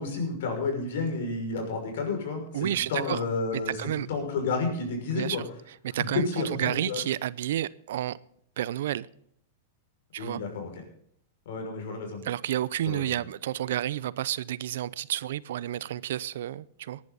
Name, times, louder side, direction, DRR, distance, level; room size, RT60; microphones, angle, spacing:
voice 1, 0.0-3.8 4.1-5.4 5.9-7.0 10.2-10.7 11.5-12.3 12.8-13.2, left 4 dB, 70° left, 6.0 m, -31 dB
voice 2, 2.5-3.2 3.5-4.1 5.1-5.4 5.8-8.2 8.6-9.1 10.1-10.4 12.2-17.0, right 12 dB, 75° right, 0.5 m, -30 dB
19.0 x 10.5 x 4.1 m
hypercardioid pair, 130°, 0 cm